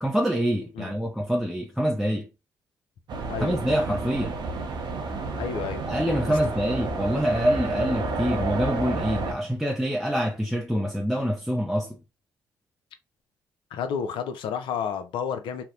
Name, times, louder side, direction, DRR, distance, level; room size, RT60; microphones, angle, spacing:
voice 1, 0.0-2.3 3.4-4.4 5.9-12.0, equal, ahead, 0.4 m, -26 dB
sound 1, 3.1-9.3, right 3 dB, 55° right, 0.6 m, -30 dB
voice 2, 5.4-5.8 6.3-6.4 13.7-15.6, left 7 dB, 70° left, 0.4 m, -31 dB
2.7 x 2.0 x 2.4 m
hypercardioid pair, 50°, 9 cm